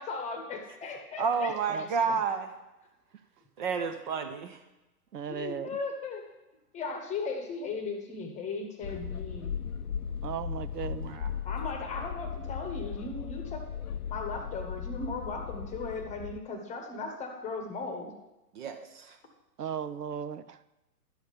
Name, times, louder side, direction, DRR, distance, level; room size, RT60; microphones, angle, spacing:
voice 1, 0.0-1.9 5.3-6.2 6.7-9.5 11.4-13.6 14.1-18.1, left 3 dB, 15° left, 4 dB, 1.1 m, -37 dB
voice 2, 1.2-2.5 3.6-4.6 11.0-11.3 18.5-19.2, right 5 dB, 30° right, 7 dB, 0.6 m, -30 dB
voice 3, 5.1-5.7 10.2-11.2 19.6-20.6, right 8 dB, 80° right, 14 dB, 0.7 m, -36 dB
sound 1, 8.8-16.4, left 8 dB, 70° left, 0.6 m, -37 dB
11.0 x 6.4 x 5.1 m, 0.99 s
figure-of-eight pair, 115°, 47 cm